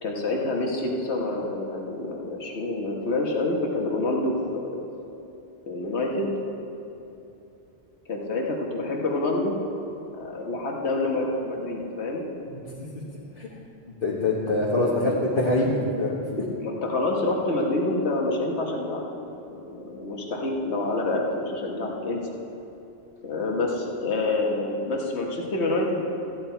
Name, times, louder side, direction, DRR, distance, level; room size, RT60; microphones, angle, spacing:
voice 1, 0.0-4.8 5.7-6.3 8.1-9.5 10.1-12.2 14.5-15.2 16.6-19.0 19.4-22.2 23.2-26.0, left 2 dB, 75° left, -1 dB, 1.5 m, -27 dB
voice 2, 14.0-16.5, left 2 dB, 55° left, -7 dB, 1.5 m, -24 dB
14.0 x 9.6 x 4.4 m, 3.0 s
omnidirectional pair, 1.1 m